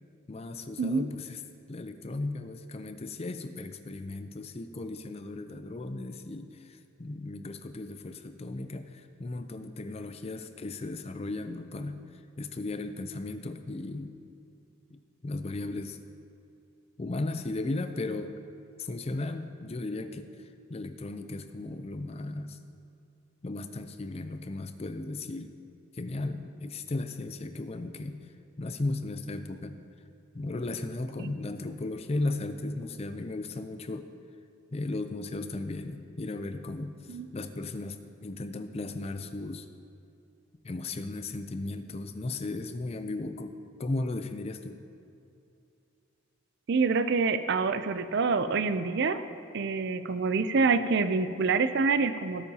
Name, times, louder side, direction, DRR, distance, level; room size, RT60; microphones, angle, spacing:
voice 1, 0.3-1.4 1.7-14.2 14.9-16.0 17.0-18.3 18.8-22.6 23.4-25.6 25.9-28.3 28.6-29.9 30.3-34.1 34.7-39.7 40.6-44.8, left 2 dB, 30° left, 9 dB, 0.4 m, -36 dB
voice 2, 46.7-49.3 49.5-52.5, right 4 dB, 50° right, 11 dB, 0.4 m, -26 dB
17.5 x 8.5 x 2.8 m, 2.7 s
head